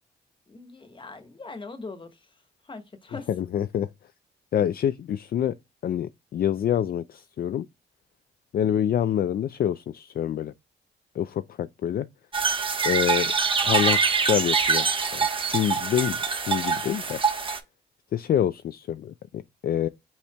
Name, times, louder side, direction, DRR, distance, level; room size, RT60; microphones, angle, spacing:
voice 1, 0.5-2.3 2.6-3.3, left 3 dB, 25° left, 1.3 m, -41 dB
voice 2, 3.3-3.9 4.5-5.5 5.8-7.7 8.5-10.5 11.2-12.1 12.8-13.3 13.6-17.2 18.1-19.9, left 10 dB, 55° left, 0.4 m, -26 dB
sound 1, 12.3-17.6, right 5 dB, 30° right, 1.1 m, -24 dB
5.7 x 4.2 x 2.2 m
cardioid pair, 75°, 19 cm